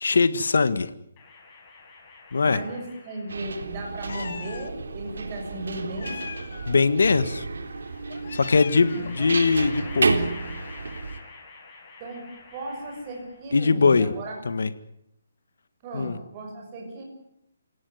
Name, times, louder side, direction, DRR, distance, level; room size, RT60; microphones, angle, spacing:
voice 1, 0.0-0.9 2.3-2.6 6.7-7.5 8.3-10.3 13.5-14.1 14.5-14.7 15.9-16.2, left 4 dB, 75° left, 13 dB, 1.7 m, -21 dB
sound 1, 1.2-3.8 4.9-5.9 7.5-13.5, left 4 dB, 20° left, 7.1 m, -47 dB
voice 2, 2.4-6.4 8.9-9.3 12.0-14.3 15.8-17.0, right 1 dB, 20° right, 0 dB, 6.8 m, -36 dB
sound 2, 3.3-11.2, right 3 dB, 85° right, 3.7 m, -31 dB
Meow, 4.1-4.7 6.0-6.9 8.1-9.2, left 6 dB, 55° left, 1.6 m, -39 dB
28.5 x 17.5 x 9.6 m, 0.78 s
hypercardioid pair, 170°, 0 cm